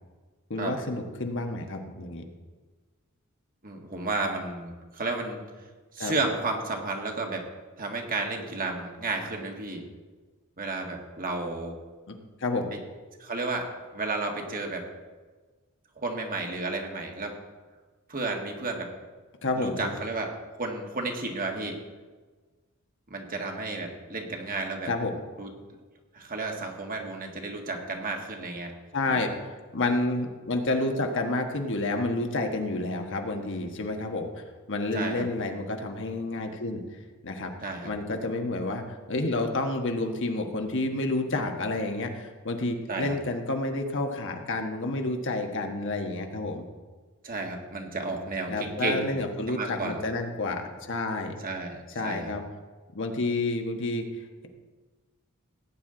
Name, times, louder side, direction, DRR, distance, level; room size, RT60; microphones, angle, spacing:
voice 1, 0.5-2.2 6.0-6.1 12.1-12.7 19.4-19.9 24.9-25.1 28.9-36.8 37.2-37.5 37.8-46.6 48.5-51.3 51.9-52.4 52.9-54.0, left 2 dB, 60° left, 4 dB, 1.3 m, -30 dB
voice 2, 3.6-5.4 5.9-7.4 7.8-9.9 10.6-11.8 12.7-12.8 13.2-14.8 16.0-17.3 18.1-18.9 19.5-21.8 23.1-24.9 25.4-25.5 26.1-28.7 29.1-29.2 34.9-35.2 37.6-37.9 42.9-43.1 47.2-49.1 49.5-50.0 51.4-52.3, right 3 dB, 40° right, 2 dB, 1.7 m, -32 dB
17.0 x 9.2 x 3.9 m, 1.3 s
head